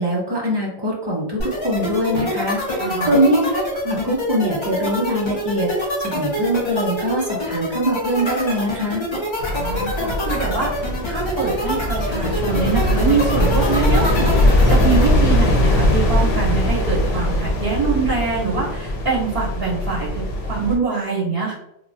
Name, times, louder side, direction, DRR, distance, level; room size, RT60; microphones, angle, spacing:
voice 1, 0.0-9.0, right 1 dB, 35° right, -2 dB, 0.5 m, -22 dB
sound 1, 1.4-15.1, left 1 dB, 35° left, 0.6 m, -26 dB
voice 2, 2.8-3.2 9.5-20.1 20.5-21.5, right 5 dB, 65° right, -8 dB, 1.6 m, -24 dB
sound 2, 9.4-20.8, left 1 dB, 90° left, 0.9 m, -20 dB
3.0 x 2.2 x 2.5 m, 0.83 s
omnidirectional pair, 1.1 m